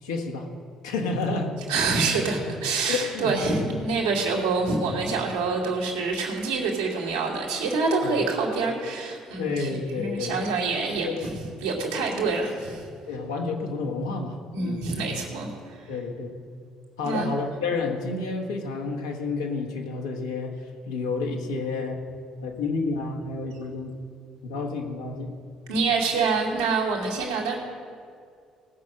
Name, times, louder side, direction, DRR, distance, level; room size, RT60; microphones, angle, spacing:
voice 1, 0.0-0.5 0.8-1.6 2.5-2.6 2.9-3.4 8.0-8.2 9.4-10.5 10.9-11.3 12.1-12.2 13.1-14.9 15.9-16.4 17.0-22.0 22.4-23.9 24.4-25.3, left 3 dB, 85° left, 1 dB, 1.7 m, -30 dB
voice 2, 1.7-11.4 11.6-12.9 14.5-15.8 17.0-17.3 25.7-27.6, right 4 dB, 85° right, -3 dB, 2.8 m, -26 dB
18.0 x 6.5 x 7.7 m, 2.3 s
hypercardioid pair, 50°, 2 cm